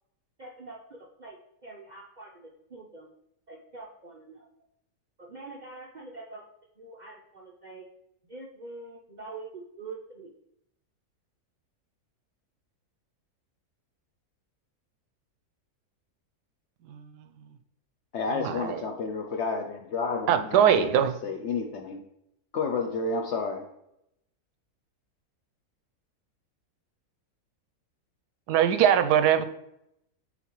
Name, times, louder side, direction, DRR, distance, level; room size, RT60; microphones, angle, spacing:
voice 1, 0.4-3.1 3.5-4.5 5.2-6.4 6.8-7.8 8.3-10.3, right 3 dB, 65° right, 0.4 m, -44 dB
voice 2, 16.9-17.3 18.3-18.9 20.3-21.1 28.5-29.5, right 9 dB, 90° right, 1.1 m, -22 dB
voice 3, 18.1-22.0 22.5-23.6, left 4 dB, 65° left, 0.7 m, -31 dB
8.2 x 4.1 x 3.0 m
omnidirectional pair, 1.7 m